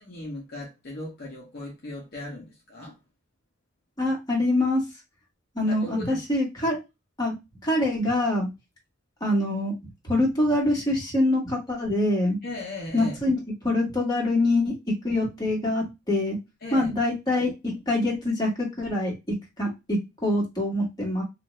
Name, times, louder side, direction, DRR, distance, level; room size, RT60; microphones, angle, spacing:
voice 1, 0.1-3.0 5.7-6.2 12.4-13.1 16.6-16.9, left 2 dB, 50° left, 0.8 m, -37 dB
voice 2, 4.0-4.8 5.5-6.8 7.2-7.3 7.6-8.5 9.2-9.7 10.0-12.4 12.9-13.4 13.6-14.8 15.0-16.4 16.7-21.2, left 1 dB, 20° left, 1.4 m, -25 dB
2.6 x 2.5 x 3.1 m
head